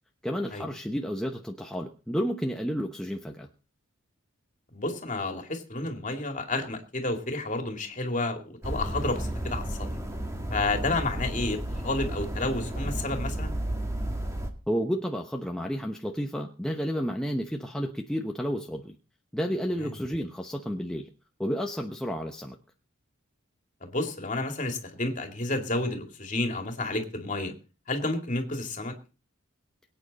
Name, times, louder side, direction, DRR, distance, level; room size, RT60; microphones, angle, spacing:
voice 1, 0.2-3.5 14.7-19.0 19.3-21.1 21.4-22.6, equal, 5° left, 1 dB, 0.9 m, -31 dB
voice 2, 4.7-9.8 10.5-11.6 11.8-13.5 19.8-19.9 23.8-27.5 27.9-28.9, left 2 dB, 35° left, 4 dB, 2.5 m, -30 dB
sound 1, 8.6-14.5, right 1 dB, 15° right, 1.9 m, -32 dB
23.0 x 9.1 x 4.2 m, 0.35 s
head